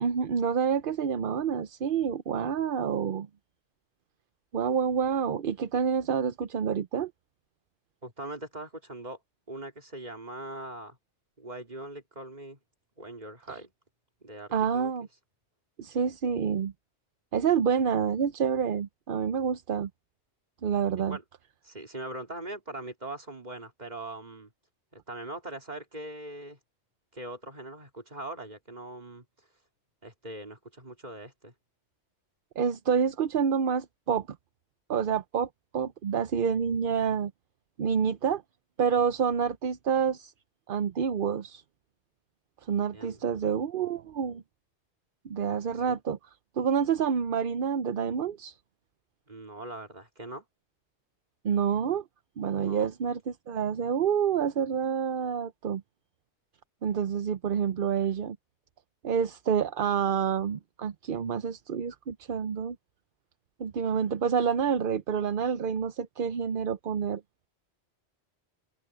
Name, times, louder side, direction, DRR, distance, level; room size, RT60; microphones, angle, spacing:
voice 1, 0.0-3.3 4.5-7.1 14.5-15.1 15.8-16.7 17.3-19.9 20.6-21.2 32.6-34.3 34.9-37.3 37.8-38.4 38.8-40.3 40.7-41.6 42.6-44.4 45.2-46.2 46.6-48.5 51.4-52.0 52.4-55.8 56.8-58.4 59.0-62.8 63.6-67.2, right 7 dB, 55° right, 0.8 m, -28 dB
voice 2, 8.0-9.2 9.5-11.0 11.4-12.6 13.0-13.7 14.2-14.9 21.0-21.2 21.6-24.5 24.9-26.6 27.1-29.2 30.0-31.5 42.7-43.3 45.9-46.0 49.3-50.4 52.6-52.9, right 1 dB, 40° right, 3.3 m, -41 dB
omnidirectional pair, 1.2 m